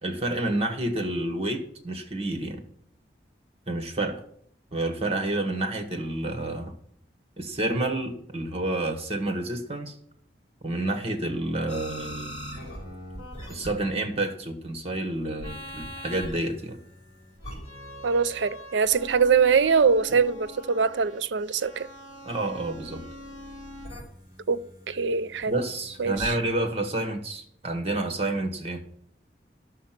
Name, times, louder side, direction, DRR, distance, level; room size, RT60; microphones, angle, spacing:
voice 1, 0.0-2.6 3.7-4.2 4.7-6.7 7.4-9.9 10.6-12.7 13.5-16.8 22.2-23.0 25.5-28.9, right 2 dB, 35° right, 1.3 m, -29 dB
sound 1, 11.7-14.2 15.4-26.4, equal, 35° left, 5.6 m, -42 dB
voice 2, 18.0-21.9 24.5-24.6 24.9-25.5 26.0-26.3, right 5 dB, 85° right, 0.5 m, -23 dB
11.5 x 6.6 x 5.9 m
head